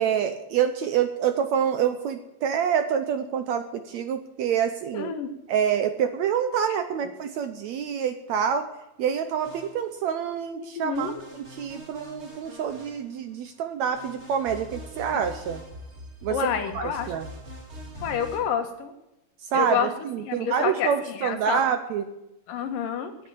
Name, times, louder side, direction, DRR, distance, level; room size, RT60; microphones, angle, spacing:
voice 1, 0.0-5.1 5.5-8.7 9.0-15.6 16.2-16.4 16.7-17.3 19.5-22.0, right 8 dB, 70° right, 9 dB, 1.7 m, -27 dB
voice 2, 4.9-5.3 10.8-11.2 16.3-17.1 18.0-18.9 19.5-19.9 20.2-21.6 22.5-23.1, left 8 dB, 80° left, 6 dB, 3.1 m, -28 dB
sound 1, 9.4-10.3 10.9-13.5 13.9-18.4, equal, 20° right, 2.4 m, -43 dB
10.0 x 10.0 x 8.2 m, 0.91 s
omnidirectional pair, 3.9 m